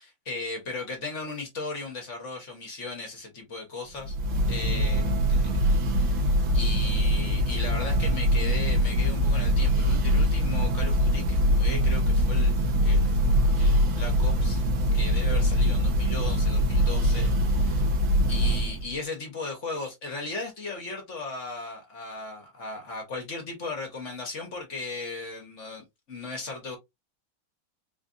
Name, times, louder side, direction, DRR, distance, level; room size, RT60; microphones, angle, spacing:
voice 1, 0.0-4.2 4.5-13.2 13.6-14.6 14.9-17.9 18.3-26.8, left 3 dB, 45° left, 1.2 m, -37 dB
Church bell, 4.0-18.9, equal, 90° right, 1.6 m, -23 dB
4.3 x 2.5 x 2.5 m
omnidirectional pair, 2.1 m